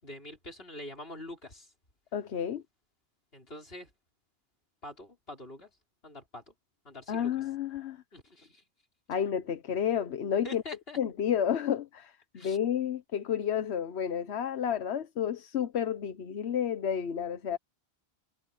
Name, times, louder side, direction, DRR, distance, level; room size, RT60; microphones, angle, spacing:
voice 1, 0.0-1.7 3.3-3.9 4.8-5.7 6.0-6.5 6.9-7.4 8.1-8.6 10.4-11.0 12.3-12.6, left 1 dB, 65° left, 5.3 m, -45 dB
voice 2, 2.1-2.6 7.1-8.0 9.1-10.6 11.0-17.6, left 8 dB, 85° left, 1.2 m, -31 dB
omnidirectional pair, 1.1 m